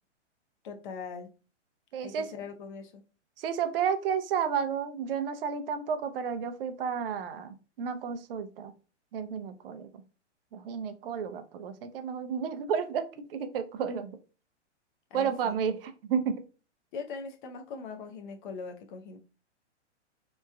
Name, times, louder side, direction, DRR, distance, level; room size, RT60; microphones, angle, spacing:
voice 1, 0.6-1.3 2.0-3.0 13.2-13.4 15.1-15.6 16.9-19.2, left 5 dB, 45° left, 0.6 m, -41 dB
voice 2, 1.9-2.3 3.4-8.7 9.1-10.0 10.5-14.2 15.1-16.4, right 7 dB, 50° right, 0.4 m, -32 dB
2.9 x 2.2 x 2.4 m
hypercardioid pair, 120°, 36 cm